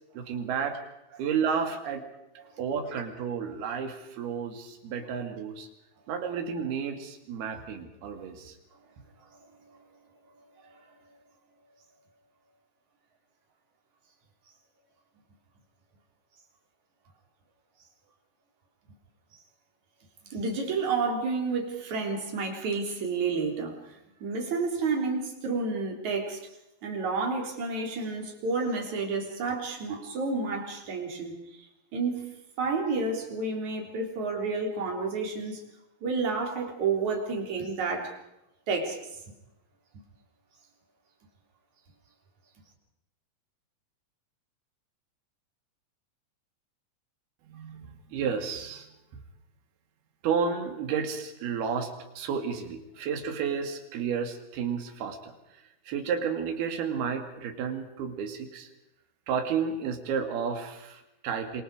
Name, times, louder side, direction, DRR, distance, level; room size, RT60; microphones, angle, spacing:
voice 1, 0.1-0.8 1.2-2.0 2.6-5.7 6.1-8.6 47.5-48.9 50.2-55.3 55.9-58.7 59.3-61.6, right 6 dB, 80° right, 5 dB, 4.2 m, -31 dB
voice 2, 20.3-23.8 24.2-26.4 26.8-31.3 31.9-32.2 32.6-35.6 36.0-38.1 38.7-39.0, right 4 dB, 50° right, 2 dB, 4.9 m, -30 dB
26.5 x 24.0 x 4.9 m, 0.88 s
omnidirectional pair, 4.5 m